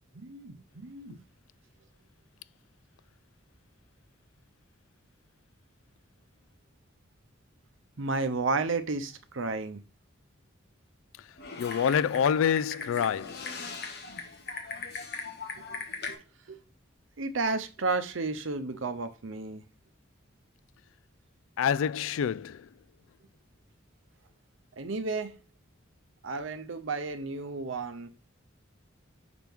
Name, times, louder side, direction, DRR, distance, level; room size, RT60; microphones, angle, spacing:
voice 1, 0.1-1.2 8.0-9.8 15.6-15.7 16.0-16.2 16.5-16.6 17.2-19.6 24.8-25.4 26.2-28.1, right 3 dB, 75° right, 0.7 m, -32 dB
Typing, 11.4-16.1, left 4 dB, 50° left, 1.3 m, -39 dB
voice 2, 11.6-13.6 21.6-22.7, left 8 dB, 85° left, 0.3 m, -27 dB
5.9 x 5.9 x 3.5 m
head